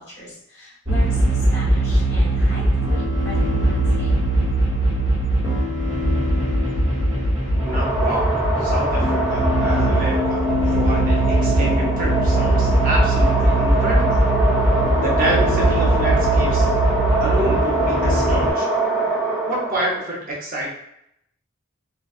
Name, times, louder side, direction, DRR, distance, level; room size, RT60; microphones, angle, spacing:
voice 1, 0.0-4.1, left 1 dB, 55° left, -7 dB, 1.4 m, -37 dB
sound 1, 0.9-18.5, right 1 dB, 20° right, 1.1 m, -20 dB
sound 2, 7.5-20.0, right 2 dB, ahead, 0.9 m, -24 dB
voice 2, 7.6-14.2 15.0-16.7 17.2-18.7 19.5-20.7, right 1 dB, 40° right, -4 dB, 0.7 m, -27 dB
2.5 x 2.3 x 2.4 m, 0.77 s
head